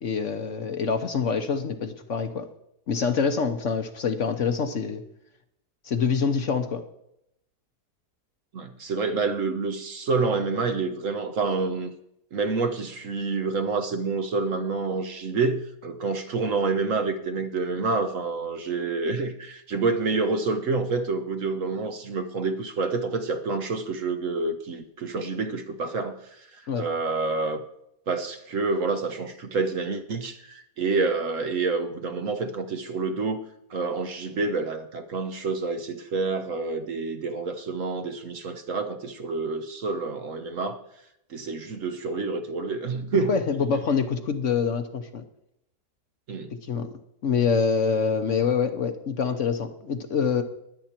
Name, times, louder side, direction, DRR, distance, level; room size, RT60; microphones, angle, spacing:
voice 1, 0.0-2.5 2.9-5.0 5.8-6.8 26.7-26.9 43.3-45.2 46.6-46.9 47.2-50.4, left 5 dB, 55° left, 8 dB, 1.1 m, -25 dB
voice 2, 8.5-11.9 12.3-27.6 28.1-33.4 33.7-40.8 41.3-43.3 46.3-46.5, right 4 dB, 55° right, 8 dB, 1.2 m, -28 dB
21.0 x 8.3 x 4.4 m, 0.79 s
omnidirectional pair, 1.8 m